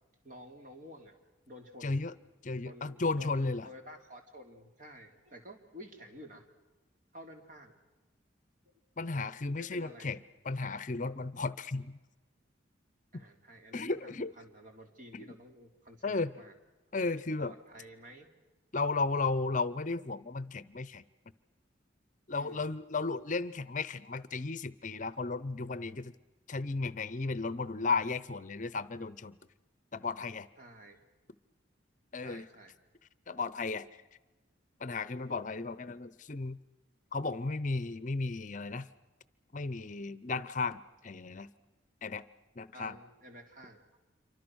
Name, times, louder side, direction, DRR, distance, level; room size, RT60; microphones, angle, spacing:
voice 1, 0.2-1.2 1.5-2.0 2.5-6.5 7.1-7.7 8.7-8.8 9.6-10.1 13.1-16.5 17.4-18.3 22.3-22.7 30.6-31.0 32.2-32.8 42.7-44.0, equal, 45° right, 3 dB, 3.6 m, -51 dB
voice 2, 1.8-2.1 2.4-3.7 9.0-10.2 10.4-12.0 13.7-14.3 15.1-15.3 16.0-16.3 16.9-17.5 18.7-21.0 22.3-26.1 26.5-29.4 29.9-30.5 32.1-32.4 33.3-33.9 34.8-36.6 37.1-38.9 39.5-41.5 42.0-42.2 42.6-43.0, left 3 dB, 40° left, 16 dB, 0.7 m, -34 dB
28.0 x 25.0 x 6.3 m, 1.1 s
head